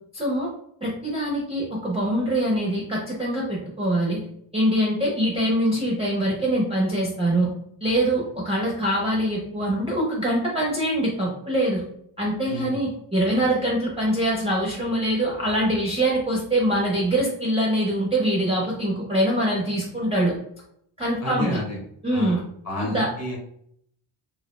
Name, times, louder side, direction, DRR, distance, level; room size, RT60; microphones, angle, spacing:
voice 1, 0.1-0.5 0.8-4.2 4.5-7.5 7.8-11.8 12.2-20.3 21.0-21.6 22.0-22.4 22.8-23.1, right 1 dB, 15° right, -4 dB, 0.4 m, -24 dB
voice 2, 12.5-12.8 21.2-21.8 22.1-23.4, left 1 dB, 35° left, -2 dB, 0.8 m, -31 dB
2.4 x 2.0 x 2.9 m, 0.70 s
cardioid pair, 135°, 47 cm